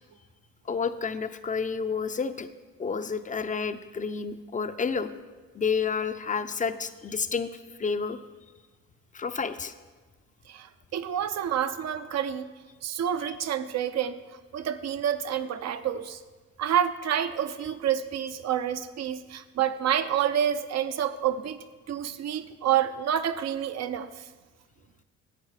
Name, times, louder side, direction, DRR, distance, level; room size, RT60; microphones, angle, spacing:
voice 1, 0.7-2.5 2.8-5.1 5.5-7.5 7.8-8.2 9.1-9.7, left 5 dB, 25° left, 11 dB, 0.6 m, -30 dB
voice 2, 10.5-12.5 12.8-14.1 14.5-16.2 16.6-21.6 21.9-24.2, right 9 dB, 60° right, 10 dB, 0.7 m, -28 dB
11.0 x 8.2 x 4.9 m, 1.3 s
cardioid pair, 90°, 30 cm